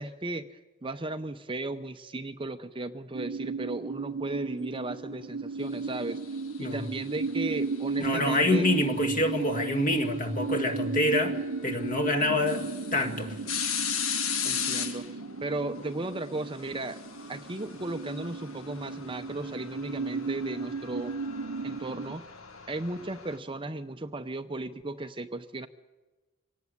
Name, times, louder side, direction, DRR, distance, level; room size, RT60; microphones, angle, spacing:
voice 1, 0.0-6.2 6.6-8.7 14.4-15.1 15.4-17.0 17.3-21.2 21.6-22.3 22.7-25.7, right 2 dB, 25° right, 9 dB, 0.7 m, -35 dB
sound 1, 3.1-22.2, right 4 dB, 65° right, 0.7 m, -35 dB
sound 2, 6.1-7.6 9.4-9.5 11.1-11.2 11.7-11.8 12.2-23.4, left 7 dB, 70° left, 1.7 m, -37 dB
voice 2, 8.0-13.4, left 1 dB, 35° left, 6 dB, 2.0 m, -27 dB
25.0 x 18.0 x 9.7 m, 1.2 s
head